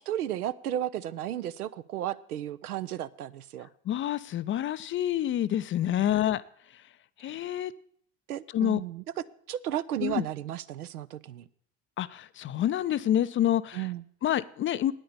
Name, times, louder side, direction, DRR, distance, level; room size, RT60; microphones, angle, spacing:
voice 1, 0.0-3.7 5.9-6.1 8.3-9.0 9.5-11.5 13.7-14.0, right 12 dB, 80° right, 15 dB, 0.6 m, -34 dB
voice 2, 3.9-6.4 7.2-7.7 8.5-8.8 10.0-10.2 12.0-13.9 14.2-14.9, left 11 dB, 30° left, 15 dB, 0.5 m, -27 dB
9.5 x 8.9 x 6.9 m, 0.63 s
figure-of-eight pair, 60°, 45 cm